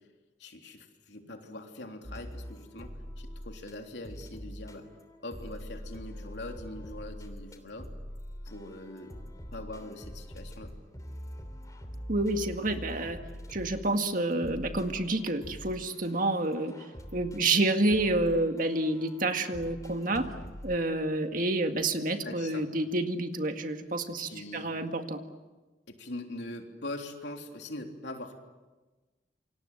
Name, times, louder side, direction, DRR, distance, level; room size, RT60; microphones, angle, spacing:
voice 1, 0.4-4.9 5.2-7.9 8.5-9.1 9.5-10.7 22.2-22.7 24.2-24.7 25.9-28.4, left 2 dB, 70° left, 3 dB, 3.4 m, -42 dB
sound 1, 2.0-3.7 4.0-20.8, equal, 20° left, 3.1 m, -44 dB
voice 2, 12.1-13.2 13.5-20.3 20.6-25.2, right 2 dB, 45° right, 6 dB, 1.9 m, -29 dB
28.5 x 25.5 x 7.9 m, 1.2 s
head